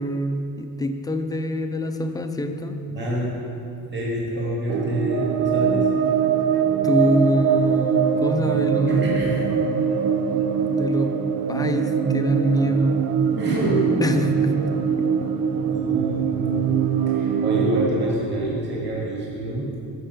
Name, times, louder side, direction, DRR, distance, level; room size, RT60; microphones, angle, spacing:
voice 1, 0.0-2.8 6.8-9.0 10.6-11.1 11.5-13.1 14.0-14.5 15.0-15.1, equal, 10° left, 6 dB, 0.5 m, -24 dB
voice 2, 2.9-3.4 3.9-6.0 8.9-9.4 13.3-13.9 15.7-16.6 17.1-19.8, right 1 dB, 30° right, -5 dB, 2.4 m, -27 dB
sound 1, 4.7-17.9, right 7 dB, 90° right, 0.8 m, -22 dB
11.5 x 6.5 x 7.0 m, 2.6 s
cardioid pair, 165°, 35 cm